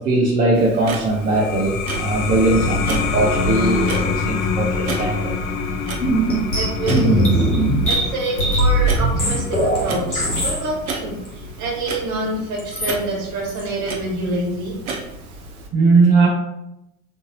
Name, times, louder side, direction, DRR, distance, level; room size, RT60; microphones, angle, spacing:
voice 1, 0.0-5.4 15.7-16.3, right 3 dB, 20° right, -3 dB, 0.4 m, -19 dB
Clock, 0.5-15.7, right 3 dB, 70° right, 0.7 m, -34 dB
sound 1, 1.1-12.3, left 4 dB, 65° left, 0.6 m, -26 dB
sound 2, 6.0-10.6 11.2-11.3 12.6-12.9 13.5-13.7, right 1 dB, 90° left, 1.1 m, -19 dB
voice 2, 6.5-7.4 7.8-14.8, right 2 dB, 40° right, -1 dB, 1.2 m, -27 dB
3.7 x 2.7 x 2.6 m, 0.85 s
figure-of-eight pair, 70°, 44 cm